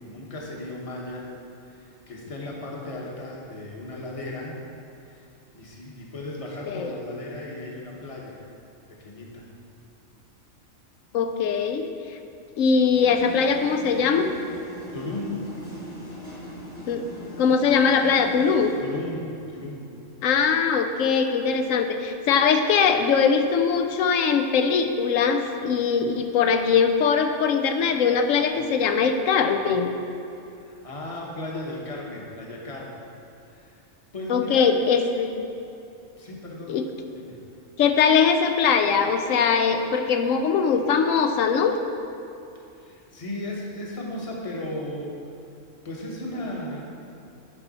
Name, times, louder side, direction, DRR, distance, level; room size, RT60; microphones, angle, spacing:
voice 1, 0.0-1.3 1.6-4.6 5.0-5.3 5.5-8.4 8.9-9.5 14.9-15.4 18.8-19.9 30.6-33.0 33.4-33.8 34.1-34.7 36.2-36.8 37.1-37.4 42.8-45.2 45.8-46.8, left 1 dB, 30° left, -2 dB, 1.1 m, -35 dB
voice 2, 11.1-11.9 12.6-14.3 16.9-17.0 17.4-18.8 20.2-29.9 34.3-35.5 36.7-36.8 37.8-41.7, left 6 dB, 75° left, 6 dB, 1.0 m, -21 dB
sound 1, 12.9-18.8, equal, 50° left, 2.6 m, -39 dB
9.8 x 5.5 x 4.1 m, 2.7 s
omnidirectional pair, 1.4 m